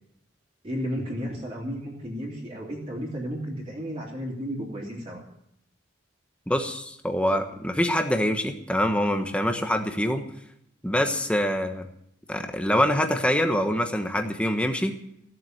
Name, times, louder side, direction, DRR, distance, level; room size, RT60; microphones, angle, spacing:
voice 1, 0.6-5.2, equal, 30° right, -5 dB, 3.4 m, -33 dB
voice 2, 6.5-10.2 10.8-11.9 12.3-14.9, equal, 5° left, 5 dB, 1.2 m, -25 dB
16.5 x 7.7 x 9.4 m, 0.76 s
head